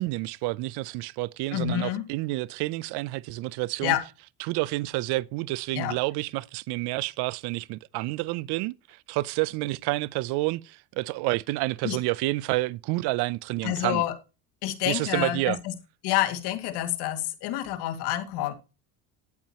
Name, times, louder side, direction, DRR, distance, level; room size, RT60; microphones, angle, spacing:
voice 1, 0.0-3.9 4.4-14.0 14.9-15.6, right 20 dB, 70° right, 0.6 m, -29 dB
voice 2, 1.5-2.0 3.8-4.0 5.8-5.9 11.8-12.0 13.6-14.1 14.6-15.7 16.0-18.5, left 13 dB, 70° left, 2.2 m, -28 dB
11.0 x 8.8 x 2.9 m
supercardioid pair, 100°, 42 cm